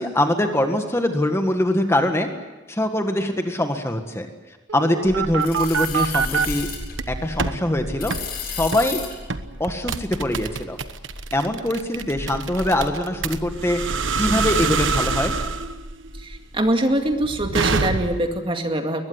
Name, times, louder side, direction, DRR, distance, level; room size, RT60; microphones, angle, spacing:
voice 1, 0.0-2.3 2.7-4.3 4.7-6.7 7.1-8.1 8.6-9.0 9.6-10.8 11.3-13.8 14.2-15.3, left 1 dB, 15° left, 5 dB, 1.7 m, -23 dB
sound 1, 4.7-6.5 6.9-7.6 8.1-8.3 8.7-8.9 9.3-18.4, right 4 dB, 85° right, 1.2 m, -25 dB
sound 2, 5.0-15.2 15.6-16.5, left 3 dB, 50° left, 7.5 m, -34 dB
voice 2, 16.2-19.1, right 1 dB, 30° right, 5 dB, 2.2 m, -23 dB
22.0 x 20.5 x 9.7 m, 1.2 s
head